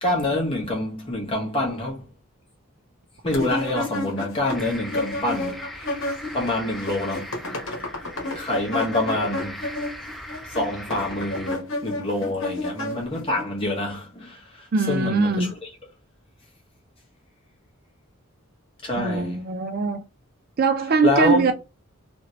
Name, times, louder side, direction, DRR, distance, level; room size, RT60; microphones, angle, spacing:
voice 1, 0.0-2.1 3.2-6.1 6.3-7.4 8.3-9.6 10.4-15.7 18.8-19.4 21.0-21.5, left 1 dB, 25° left, 1.0 m, -26 dB
sound 1, 3.3-6.5 6.7-13.4, left 2 dB, 55° left, 1.1 m, -31 dB
sound 2, 4.5-11.5, equal, ahead, 0.8 m, -39 dB
voice 2, 14.7-15.5 19.0-20.0 20.6-21.5, right 4 dB, 45° right, 0.3 m, -21 dB
3.0 x 2.6 x 2.9 m
head